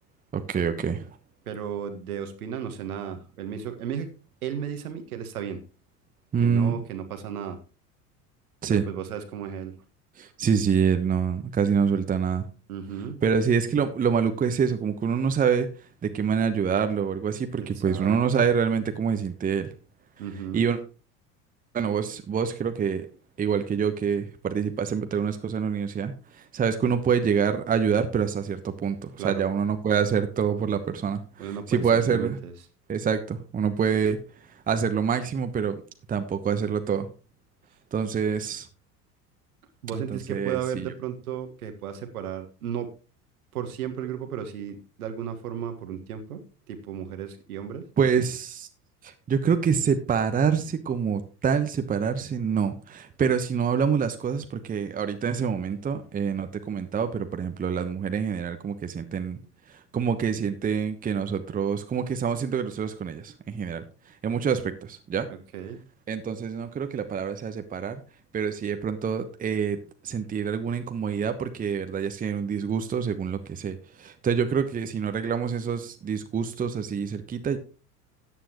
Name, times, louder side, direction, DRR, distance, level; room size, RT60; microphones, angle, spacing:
voice 1, 0.3-1.2 6.3-6.8 8.6-8.8 10.2-12.5 13.2-15.7 16.0-19.7 20.5-20.8 21.7-23.1 23.4-32.4 32.9-34.2 34.7-35.8 36.1-37.1 37.9-38.7 39.9-40.9 48.0-48.7 49.0-59.4 59.7-63.8 64.2-65.3 66.1-68.0 68.3-69.8 70.0-77.6, right 6 dB, 20° right, 9 dB, 1.0 m, -26 dB
voice 2, 1.5-4.1 4.4-5.6 6.4-7.6 8.7-9.7 12.7-13.2 17.6-18.2 20.2-20.6 29.2-29.4 31.4-32.5 39.8-42.9 43.5-46.4 46.7-47.9 65.5-65.8, right 8 dB, 65° right, 7 dB, 1.8 m, -34 dB
13.5 x 9.2 x 3.0 m, 0.33 s
figure-of-eight pair, 75°, 47 cm